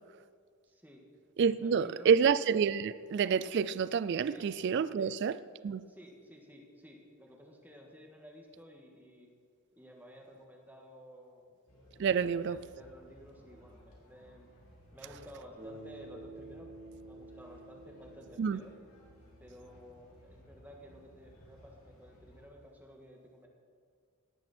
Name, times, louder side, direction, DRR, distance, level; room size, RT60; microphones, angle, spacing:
voice 1, 0.6-1.0 1.4-2.2 4.3-4.5 5.0-5.1 5.9-9.3 9.7-11.5 12.2-14.5 14.9-16.8 17.0-18.7 19.4-23.5, equal, 10° right, 1.7 m, -53 dB
voice 2, 1.4-5.4 5.6-5.8 12.0-12.6 18.4-18.6, right 6 dB, 50° right, 0.3 m, -28 dB
sound 1, 11.7-22.4, left 1 dB, 70° left, 4.0 m, -59 dB
Bass guitar, 15.6-19.9, right 2 dB, 25° right, 3.5 m, -51 dB
17.5 x 10.5 x 4.3 m
head